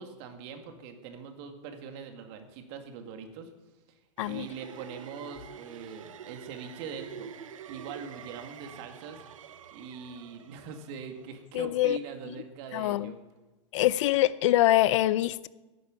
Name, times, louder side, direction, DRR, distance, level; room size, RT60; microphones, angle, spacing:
voice 1, 0.0-3.5 4.2-7.3 7.7-9.2 9.7-13.2, right 6 dB, 55° right, 5 dB, 2.2 m, -42 dB
sound 1, 4.2-11.5, right 8 dB, 90° right, 0.7 m, -47 dB
voice 2, 11.5-12.0 12.7-13.1 13.7-15.5, left 14 dB, 70° left, 19 dB, 0.6 m, -24 dB
11.0 x 9.3 x 9.9 m, 1.2 s
hypercardioid pair, 115°, 16 cm